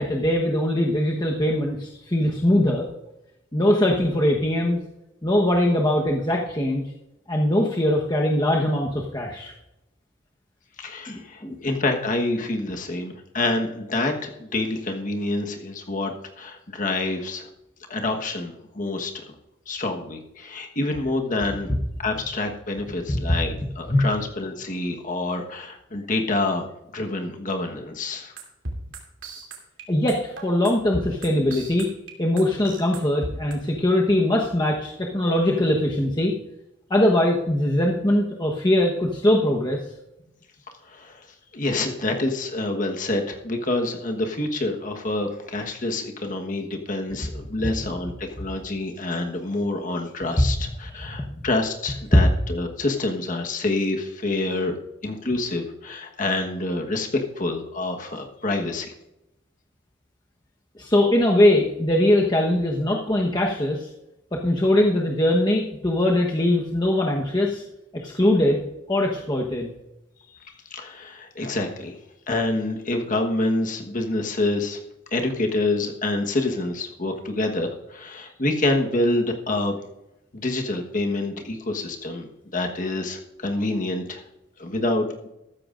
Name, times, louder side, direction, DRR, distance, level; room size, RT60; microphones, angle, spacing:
voice 1, 0.0-2.9 3.5-4.8 5.2-6.8 7.3-9.5 11.1-11.6 23.1-23.4 23.9-24.0 29.9-31.9 32.2-36.3 36.9-39.8 47.6-47.7 50.9-51.2 60.8-63.9 64.4-67.6 68.0-68.6 68.9-69.7, left 1 dB, 25° left, -1 dB, 1.1 m, -21 dB
voice 2, 10.8-17.5 17.9-19.2 19.7-21.7 22.0-26.7 26.9-28.3 40.8-41.3 41.5-54.7 55.0-58.9 70.4-72.0 72.3-74.8 75.1-79.8 80.3-84.2 84.6-85.3, left 2 dB, 45° left, 3 dB, 1.3 m, -27 dB
sound 1, 28.4-33.5, right 2 dB, 80° right, 2.9 m, -34 dB
14.0 x 13.5 x 2.5 m, 0.88 s
head